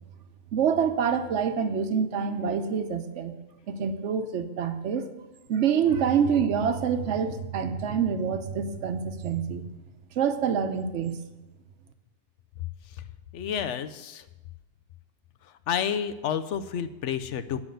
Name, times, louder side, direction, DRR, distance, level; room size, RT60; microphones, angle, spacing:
voice 1, 0.5-3.4 3.7-5.1 5.5-9.6 10.2-11.2, right 7 dB, 80° right, 9 dB, 1.1 m, -26 dB
voice 2, 13.3-14.2 15.7-17.6, left 8 dB, 90° left, 10 dB, 1.0 m, -30 dB
9.7 x 6.0 x 7.7 m, 1.1 s
omnidirectional pair, 1.2 m